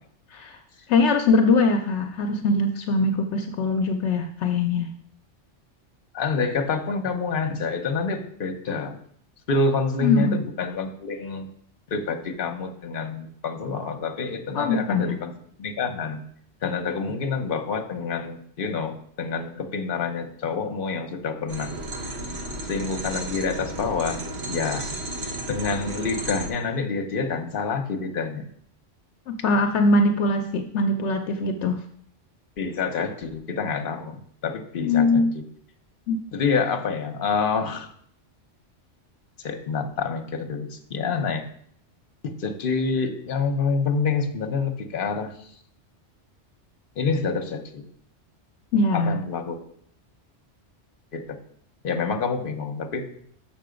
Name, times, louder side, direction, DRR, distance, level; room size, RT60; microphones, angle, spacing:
voice 1, 0.9-4.9 10.0-10.4 14.5-15.2 29.3-31.8 34.8-35.4 36.1-36.2 48.7-49.2, left 3 dB, 75° left, 6 dB, 0.9 m, -22 dB
voice 2, 6.1-9.0 9.5-11.5 11.9-15.3 15.6-16.3 16.6-21.7 22.7-24.2 24.5-24.9 25.5-28.5 32.6-35.4 36.3-37.9 39.4-41.5 42.2-45.5 47.0-47.9 48.9-49.6 51.1-51.4 51.8-53.1, left 4 dB, 50° left, 5 dB, 1.0 m, -27 dB
sound 1, 21.5-26.5, right 1 dB, 60° right, 1.2 m, -33 dB
6.7 x 5.9 x 5.1 m, 0.63 s
omnidirectional pair, 1.2 m